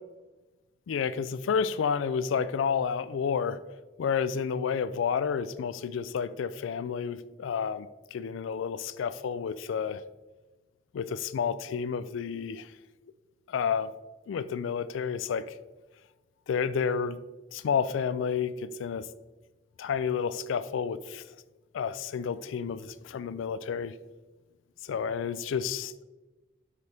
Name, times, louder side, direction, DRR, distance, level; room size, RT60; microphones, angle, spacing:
voice 1, 0.9-3.6 4.0-10.0 10.9-12.7 13.5-13.9 14.3-15.6 16.5-17.2 17.5-19.1 19.8-21.2 21.7-24.0 24.8-26.0, left 6 dB, 85° left, 15 dB, 0.3 m, -30 dB
6.7 x 4.9 x 3.4 m, 1.2 s
head